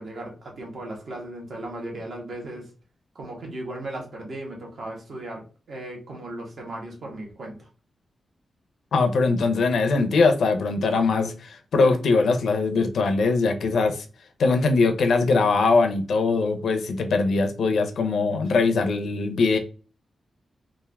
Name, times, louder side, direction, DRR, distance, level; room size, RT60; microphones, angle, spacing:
voice 1, 0.0-2.6 3.1-5.4 5.7-7.7, right 1 dB, 55° right, 1.3 m, -36 dB
voice 2, 8.9-14.0 14.4-19.6, left 3 dB, 75° left, 0.6 m, -21 dB
3.4 x 2.5 x 3.4 m
wide cardioid pair, 170°, 0 cm